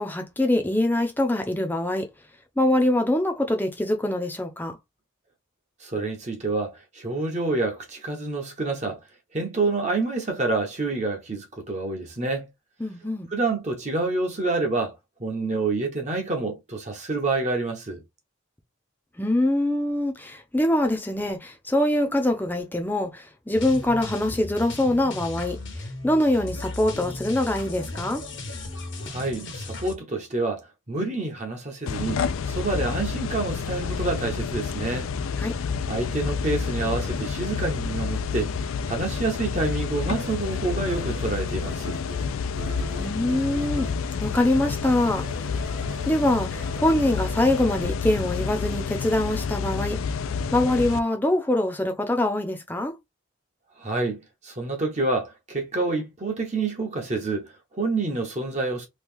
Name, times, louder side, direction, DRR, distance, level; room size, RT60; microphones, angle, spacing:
voice 1, 0.0-2.1 2.6-4.8 12.8-13.3 19.2-25.6 26.0-28.2 35.4-35.6 43.0-43.9 44.2-45.5 46.1-50.0 50.5-53.0, left 1 dB, 10° left, 0.5 m, -24 dB
voice 2, 5.8-9.0 9.3-12.5 13.3-14.9 15.2-18.0 29.0-35.1 35.9-42.0 53.8-58.9, right 3 dB, 35° right, 0.8 m, -28 dB
sound 1, 23.5-30.0, left 2 dB, 65° left, 0.9 m, -36 dB
sound 2, 31.9-51.0, left 5 dB, 85° left, 0.4 m, -29 dB
sound 3, 40.2-47.8, right 1 dB, 65° right, 1.0 m, -43 dB
3.0 x 2.3 x 3.4 m
head